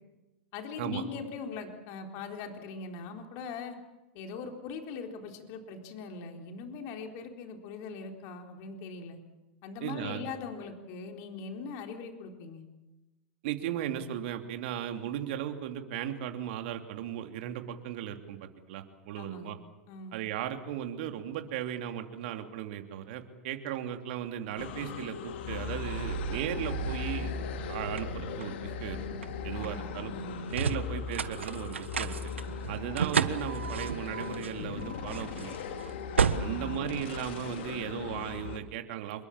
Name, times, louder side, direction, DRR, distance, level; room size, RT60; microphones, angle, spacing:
voice 1, 0.5-3.8 4.1-9.2 9.6-12.6 19.1-19.6 19.9-20.1 29.5-30.6 36.4-36.8, left 4 dB, 50° left, 4 dB, 4.0 m, -41 dB
voice 2, 9.8-10.3 13.4-19.6 20.1-27.3 27.7-29.0 29.4-30.1 30.5-32.2 32.7-35.8 36.3-39.3, right 10 dB, 60° right, 5 dB, 3.0 m, -36 dB
sound 1, 24.6-38.6, left 7 dB, 70° left, 2.5 m, -38 dB
sound 2, 25.5-37.8, right 6 dB, 90° right, 1.4 m, -35 dB
27.0 x 22.5 x 7.4 m, 1.0 s
hypercardioid pair, 105°, 6 cm